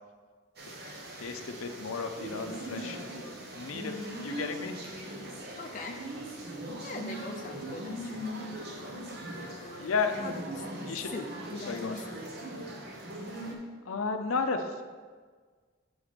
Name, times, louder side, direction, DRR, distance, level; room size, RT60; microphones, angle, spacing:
sound 1, 0.6-13.5, right 1 dB, 50° right, 1.0 m, -40 dB
voice 1, 1.2-3.0 3.5-4.8 9.8-10.1 10.9-11.1 11.7-11.9 13.9-14.8, left 4 dB, 90° left, 7 dB, 0.5 m, -33 dB
voice 2, 5.5-6.0 6.3-8.3 9.4-10.7 10.9-12.4, left 3 dB, 40° left, 3 dB, 0.5 m, -42 dB
7.2 x 3.9 x 5.0 m, 1.5 s
head